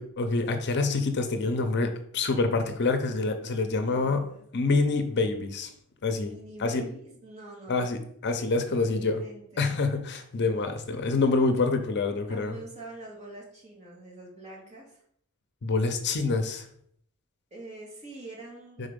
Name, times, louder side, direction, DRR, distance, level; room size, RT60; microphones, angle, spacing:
voice 1, 0.0-1.9 2.1-4.3 4.5-5.7 6.0-6.3 6.6-6.8 7.7-9.2 9.6-12.6 15.6-16.7 18.8-18.9, left 3 dB, 55° left, 7 dB, 0.7 m, -26 dB
voice 2, 3.7-4.4 6.2-7.9 8.5-8.8 9.1-9.8 12.3-15.0 17.5-18.9, right 2 dB, 30° right, -3 dB, 2.1 m, -45 dB
5.0 x 3.9 x 5.1 m, 0.67 s
head